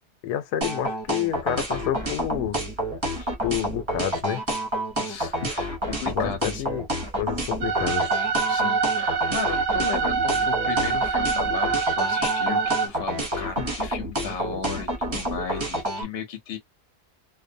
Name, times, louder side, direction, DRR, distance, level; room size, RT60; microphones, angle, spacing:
voice 1, 0.2-2.6 3.4-4.4 6.0-6.8 7.2-8.1, left 10 dB, 85° left, 1.1 m, -28 dB
sound 1, 0.6-16.0, right 1 dB, 35° right, 0.5 m, -28 dB
voice 2, 4.9-6.6 8.5-16.6, left 7 dB, 45° left, 0.9 m, -35 dB
sound 2, 7.6-12.9, right 5 dB, 65° right, 0.8 m, -25 dB
2.7 x 2.0 x 2.5 m
omnidirectional pair, 1.7 m